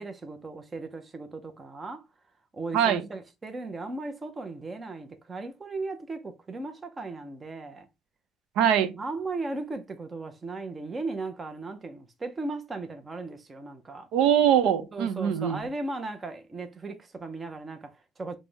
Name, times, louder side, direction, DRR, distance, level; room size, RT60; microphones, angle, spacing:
voice 1, 0.0-2.1 2.5-7.9 8.9-14.1 14.9-18.4, right 3 dB, 20° right, 0.5 m, -37 dB
voice 2, 8.6-8.9 14.1-15.6, right 9 dB, 85° right, 0.6 m, -22 dB
5.4 x 2.0 x 3.2 m
cardioid pair, 170°, 0 cm